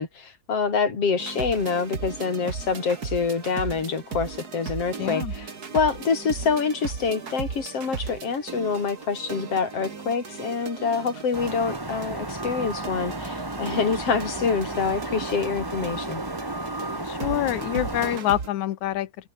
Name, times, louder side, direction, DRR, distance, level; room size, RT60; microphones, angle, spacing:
voice 1, 0.0-16.2, left 5 dB, 50° left, 5.3 m, -26 dB
sound 1, 1.2-18.5, right 5 dB, 35° right, 2.3 m, -37 dB
voice 2, 5.0-5.3 17.0-19.1, left 13 dB, 75° left, 2.5 m, -26 dB
sound 2, 11.3-18.2, right 2 dB, 10° right, 1.1 m, -33 dB
omnidirectional pair, 3.4 m